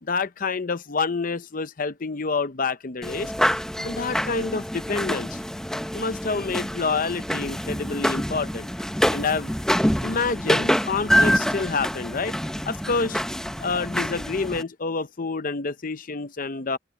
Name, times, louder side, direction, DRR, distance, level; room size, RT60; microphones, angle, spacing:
voice 1, 0.0-3.3 3.8-5.4 5.9-8.7 9.1-9.5 10.0-12.3 12.6-13.2 13.6-16.8, left 4 dB, 45° left, 0.7 m, -28 dB
sound 1, 3.0-14.6, equal, 5° left, 0.9 m, -26 dB
open air
head